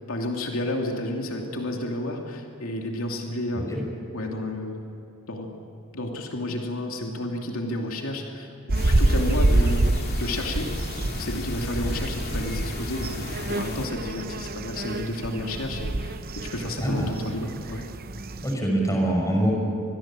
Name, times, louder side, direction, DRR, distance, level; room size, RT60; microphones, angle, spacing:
voice 1, 0.1-3.7 4.1-4.8 5.3-5.5 5.9-8.5 8.8-9.9 10.2-10.8 11.2-17.8, left 1 dB, 75° left, 1 dB, 2.7 m, -31 dB
sound 1, 8.7-13.9, left 2 dB, 45° left, 2.5 m, -34 dB
sound 2, 8.7-18.5, right 2 dB, 45° right, 0.8 m, -27 dB
voice 2, 16.8-17.2 18.4-19.5, right 1 dB, 15° left, 0 dB, 5.8 m, -24 dB
27.0 x 21.5 x 7.5 m, 2.9 s
head